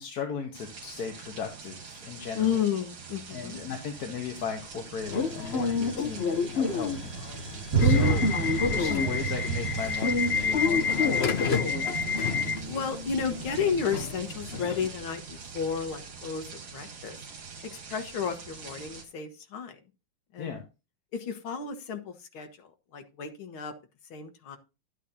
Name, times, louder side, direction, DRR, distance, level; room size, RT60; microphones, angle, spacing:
voice 1, 0.0-2.6 3.3-8.2 8.6-11.5 20.4-20.6, left 6 dB, 50° left, 4 dB, 1.5 m, -37 dB
sound 1, 0.5-19.0, right 5 dB, 65° right, 2.8 m, -35 dB
voice 2, 2.4-3.6 7.9-8.2 12.6-17.2 17.7-19.8 20.3-20.6 21.1-23.7 24.1-24.6, left 7 dB, 70° left, 7 dB, 2.1 m, -32 dB
Subway metro underground / Alarm, 5.1-14.9, left 5 dB, 90° left, 0.5 m, -28 dB
12.0 x 8.4 x 2.8 m, 0.29 s
omnidirectional pair, 2.3 m